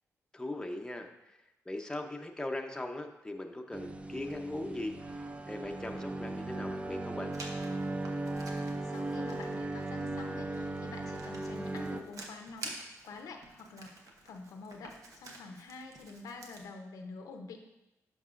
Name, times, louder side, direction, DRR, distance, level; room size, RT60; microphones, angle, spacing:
voice 1, 0.3-1.4 1.7-7.4, left 1 dB, 10° left, 3 dB, 0.8 m, -40 dB
sound 1, 3.7-12.0, right 2 dB, 20° right, 0.5 m, -37 dB
Writing, 7.3-16.6, right 2 dB, 75° right, 1.0 m, -50 dB
voice 2, 8.6-12.7 13.0-14.0 14.2-17.6, left 3 dB, 85° left, 4 dB, 0.7 m, -47 dB
10.5 x 5.4 x 2.5 m, 0.92 s
cardioid pair, 70°, 6 cm